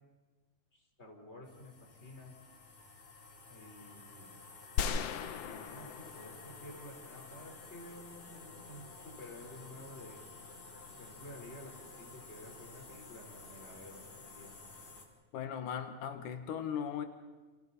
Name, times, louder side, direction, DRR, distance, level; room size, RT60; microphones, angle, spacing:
voice 1, 0.7-2.3 3.5-4.3 5.4-10.2 11.0-14.6, left 1 dB, 20° left, 1 dB, 4.2 m, -52 dB
sound 1, 1.4-15.1, left 3 dB, 45° left, 3.4 m, -52 dB
sound 2, 4.8-7.1, left 7 dB, 70° left, 1.6 m, -37 dB
voice 2, 15.3-17.1, left 8 dB, 85° left, 7 dB, 2.7 m, -38 dB
30.0 x 27.0 x 4.1 m, 1.3 s
omnidirectional pair, 3.6 m